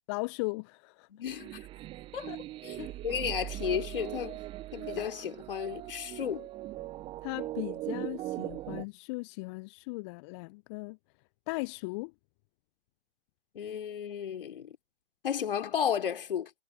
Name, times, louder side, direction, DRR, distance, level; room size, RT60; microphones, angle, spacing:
voice 1, 0.1-1.1 2.3-2.4 2.8-2.9 7.2-11.0 11.5-12.1, left 27 dB, 25° left, 1.0 m, -37 dB
voice 2, 1.1-1.7 2.1-2.3 2.6-2.8 3.0-4.4 4.7-6.5 13.5-14.8 15.2-16.5, left 8 dB, 55° left, 3.6 m, -33 dB
sound 1, 1.3-8.8, right 15 dB, 15° right, 0.9 m, -40 dB
figure-of-eight pair, 120°, 33 cm